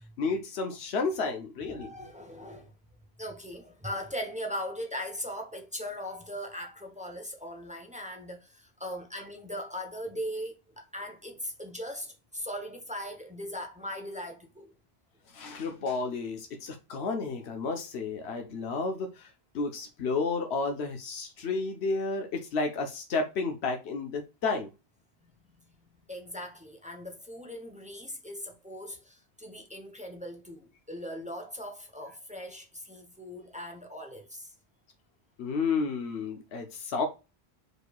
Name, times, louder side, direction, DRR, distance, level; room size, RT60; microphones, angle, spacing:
voice 1, 0.2-1.9 15.3-19.3 19.5-24.7 35.4-37.1, left 4 dB, 80° left, 1.1 m, -31 dB
voice 2, 1.6-2.7 3.2-14.7 25.5-34.5, equal, 10° right, 0.7 m, -39 dB
5.1 x 4.3 x 2.3 m
omnidirectional pair, 1.1 m